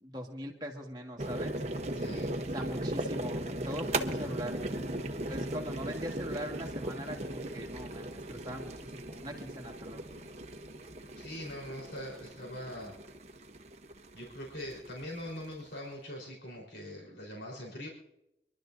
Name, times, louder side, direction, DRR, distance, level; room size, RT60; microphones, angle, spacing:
voice 1, 0.0-1.5 2.5-4.6 5.3-10.0, equal, 25° right, 1 dB, 1.6 m, -41 dB
sound 1, 1.2-15.7, right 1 dB, 40° right, 0.9 m, -38 dB
voice 2, 1.9-2.4 11.2-13.0 14.1-17.9, equal, 75° left, -3 dB, 3.9 m, -42 dB
27.0 x 12.0 x 2.6 m, 0.87 s
head